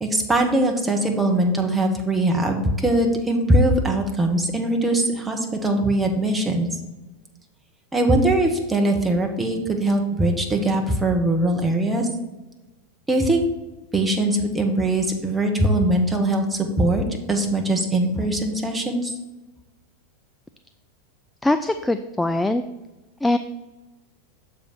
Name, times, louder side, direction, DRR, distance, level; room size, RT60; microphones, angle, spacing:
voice 1, 0.0-6.7 7.9-12.1 13.1-13.4 13.9-19.1, right 1 dB, 10° right, 2 dB, 1.2 m, -21 dB
voice 2, 21.4-22.6 23.2-23.4, left 2 dB, 5° left, 9 dB, 0.3 m, -21 dB
6.9 x 4.9 x 4.4 m, 1.1 s
figure-of-eight pair, 85°, 0 cm